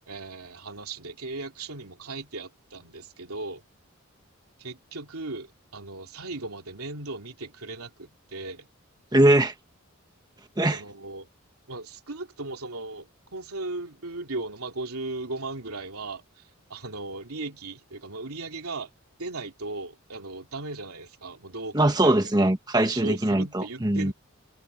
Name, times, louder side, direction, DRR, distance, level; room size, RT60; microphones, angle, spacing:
voice 1, 0.1-3.6 4.6-8.7 10.7-11.3 11.7-18.9 19.2-22.2 22.8-24.1, right 2 dB, 85° right, 3.0 m, -37 dB
voice 2, 9.1-9.5 10.6-10.8 21.7-24.1, right 1 dB, 20° right, 1.3 m, -21 dB
head